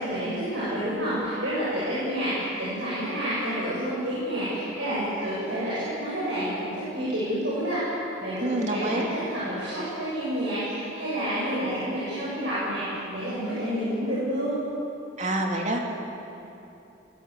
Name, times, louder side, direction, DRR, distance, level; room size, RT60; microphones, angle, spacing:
voice 1, 0.0-7.8 8.2-14.6, equal, 65° right, -9 dB, 7.7 m, -29 dB
voice 2, 8.4-9.1 15.2-15.8, right 1 dB, 35° right, 1 dB, 2.8 m, -27 dB
22.5 x 21.0 x 8.4 m, 2.9 s
head